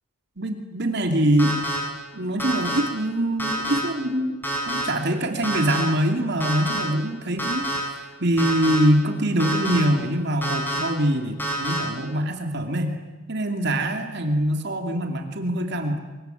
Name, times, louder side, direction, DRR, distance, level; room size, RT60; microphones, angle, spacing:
voice 1, 0.4-1.6 2.1-4.4 4.7-7.6 7.9-12.9 13.3-16.0, right 1 dB, 55° right, 4 dB, 2.8 m, -24 dB
sound 1, 1.4-1.8 2.4-2.8 3.4-3.8 4.4-4.8 5.4-5.8 6.4-6.8 7.4-7.8 8.4-8.8 9.4-9.8 10.4-10.8 11.4-11.8, right 1 dB, 10° left, 7.6 m, -27 dB
25.0 x 22.5 x 9.3 m, 1.3 s
head